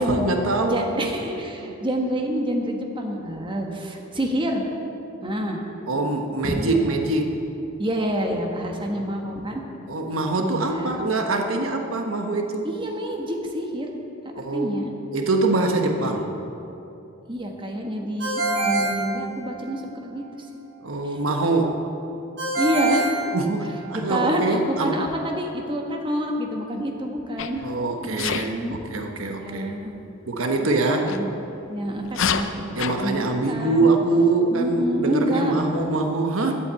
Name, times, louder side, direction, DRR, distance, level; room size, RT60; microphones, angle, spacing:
voice 1, 0.0-1.1 1.6-1.7 5.9-7.5 8.7-9.0 9.9-12.7 14.3-14.8 15.1-16.3 20.8-21.9 23.3-25.0 27.6-29.7 30.3-31.2 32.7-36.5, right 2 dB, 85° right, 4 dB, 1.1 m, -24 dB
voice 2, 0.6-4.7 5.2-5.7 6.4-6.9 7.8-9.6 10.4-11.0 12.6-13.9 14.5-14.9 17.3-20.2 21.0-21.2 22.5-23.1 23.9-27.6 28.0-28.8 29.2-29.9 30.6-31.3 31.7-33.9 34.5-35.9, equal, 25° right, 1 dB, 1.4 m, -27 dB
Ringtone, 18.2-19.9 22.4-24.1, right 2 dB, 55° right, 3.4 m, -25 dB
Sneeze, 27.4-27.7 28.2-28.5 31.0-31.2 32.1-33.0, left 7 dB, 65° left, 0.6 m, -26 dB
11.5 x 8.6 x 8.2 m, 2.8 s
head